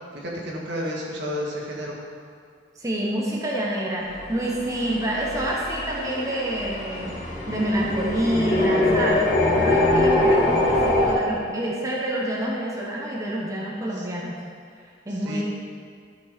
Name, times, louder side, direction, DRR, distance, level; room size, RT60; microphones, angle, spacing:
voice 1, 0.1-2.0 10.3-10.4 14.0-14.1 15.2-15.4, equal, 65° right, -3 dB, 2.1 m, -31 dB
voice 2, 2.8-7.2 7.5-9.3 9.6-14.4 15.1-15.4, right 1 dB, 20° right, -4 dB, 1.2 m, -27 dB
sound 1, 4.0-11.1, left 1 dB, 40° left, 2.0 m, -23 dB
13.5 x 6.2 x 5.2 m, 2.2 s
head